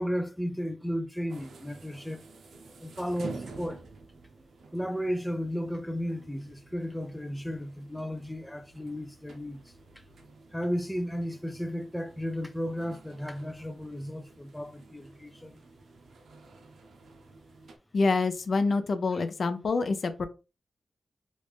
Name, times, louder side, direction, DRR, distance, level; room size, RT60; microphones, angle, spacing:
voice 1, 0.0-2.2 2.8-3.9 4.7-9.6 10.0-10.1 10.5-15.6 19.1-19.2, equal, 5° left, 0.4 m, -34 dB
sound 1, 1.3-17.8, right 3 dB, 85° right, 0.6 m, -50 dB
voice 2, 17.9-20.3, left 3 dB, 60° left, 0.5 m, -26 dB
3.1 x 2.5 x 3.4 m
cardioid pair, 80°, 0 cm